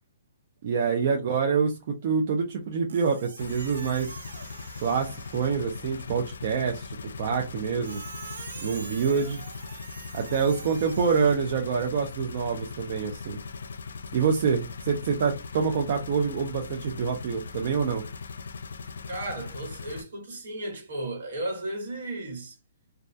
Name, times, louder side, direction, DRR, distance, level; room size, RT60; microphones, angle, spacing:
voice 1, 0.6-4.2 4.8-8.0 8.6-9.4 10.1-13.4 14.1-18.0, right 6 dB, 40° right, 0.4 m, -26 dB
Squeak, 2.9-5.7 7.8-11.4, right 4 dB, 90° right, 0.6 m, -44 dB
sound 1, 3.4-20.0, left 4 dB, 90° left, 0.3 m, -40 dB
voice 2, 19.1-22.6, right 1 dB, 65° right, 1.2 m, -35 dB
2.2 x 2.2 x 2.6 m
hypercardioid pair, 170°, 0 cm